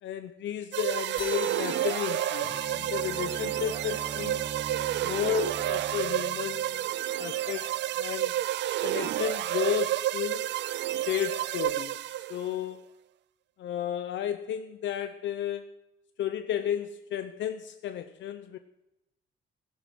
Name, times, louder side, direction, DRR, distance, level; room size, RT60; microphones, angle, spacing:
voice 1, 0.0-4.4 5.0-6.9 7.2-8.3 8.8-10.5 11.1-12.9 13.6-15.8 16.2-18.6, left 10 dB, 65° left, 9 dB, 0.8 m, -33 dB
sound 1, 0.7-12.5, right 13 dB, 65° right, 0.4 m, -30 dB
sound 2, 1.2-6.1, left 6 dB, 20° left, 1.3 m, -47 dB
Bowed string instrument, 2.4-7.4, right 4 dB, 20° right, 0.8 m, -43 dB
15.5 x 11.0 x 6.2 m, 0.94 s
cardioid pair, 175°, 20 cm